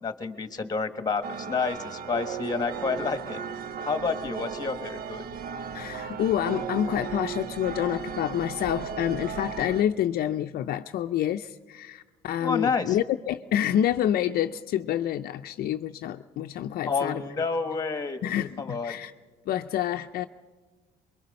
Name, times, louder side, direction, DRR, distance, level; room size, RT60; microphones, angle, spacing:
voice 1, 0.0-3.4 3.8-5.2 12.4-13.0 16.8-18.2 18.6-18.9, left 4 dB, 25° left, 8 dB, 1.5 m, -29 dB
sound 1, 1.2-9.8, right 7 dB, 60° right, 0.9 m, -36 dB
voice 2, 5.7-17.2 18.2-19.1 19.5-20.3, left 11 dB, 65° left, 7 dB, 0.5 m, -28 dB
24.0 x 22.5 x 5.4 m, 1.3 s
cardioid pair, 110°, 17 cm